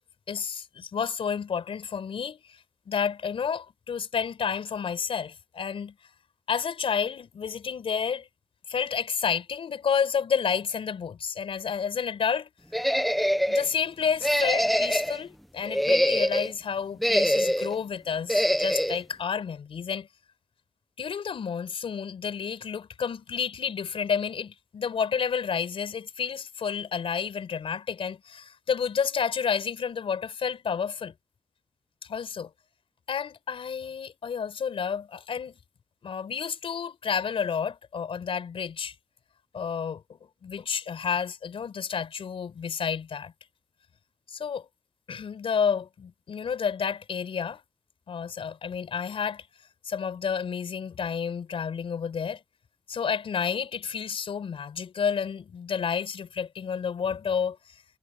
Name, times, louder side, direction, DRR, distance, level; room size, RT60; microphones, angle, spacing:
voice 1, 0.3-2.6 2.9-5.9 6.5-8.3 8.7-12.5 13.5-20.1 21.0-31.1 32.0-32.5 33.1-35.6 36.0-38.9 39.5-43.3 44.3-44.7 45.1-47.6 48.1-49.5 49.8-52.4 52.9-57.6, left 7 dB, 55° left, 4.9 m, -30 dB
sound 1, 12.7-13.7 14.2-15.2 15.6-16.5 17.0-17.8 18.3-19.0, equal, ahead, 1.0 m, -24 dB
wide cardioid pair, 170°, 11 cm